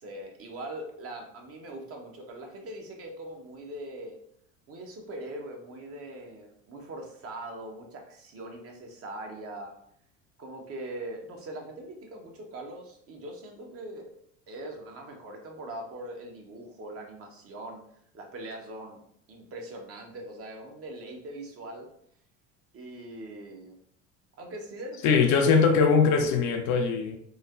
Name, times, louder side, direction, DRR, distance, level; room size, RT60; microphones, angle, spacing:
voice 1, 0.0-4.2 4.7-9.7 10.4-14.1 14.5-17.8 18.1-19.0 19.3-21.9 22.7-23.8 24.4-25.4, right 1 dB, 35° right, 0.7 m, -41 dB
voice 2, 25.0-27.2, left 5 dB, 45° left, 0.5 m, -21 dB
3.1 x 2.0 x 2.3 m
hypercardioid pair, 70°, 39 cm